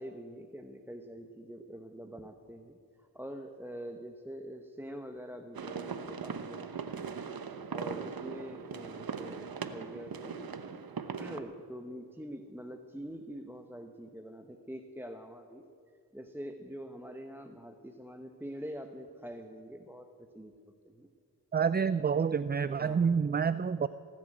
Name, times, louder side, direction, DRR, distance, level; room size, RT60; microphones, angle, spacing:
voice 1, 0.0-7.1 7.7-10.6 11.2-15.6 16.1-20.5 20.8-21.1 22.8-23.1, equal, 5° right, 5 dB, 0.9 m, -45 dB
sound 1, 5.5-11.4, right 6 dB, 65° right, 1.0 m, -40 dB
voice 2, 21.5-23.9, right 6 dB, 25° right, 15 dB, 0.3 m, -28 dB
18.0 x 7.5 x 8.9 m, 2.4 s
cardioid pair, 45°, 39 cm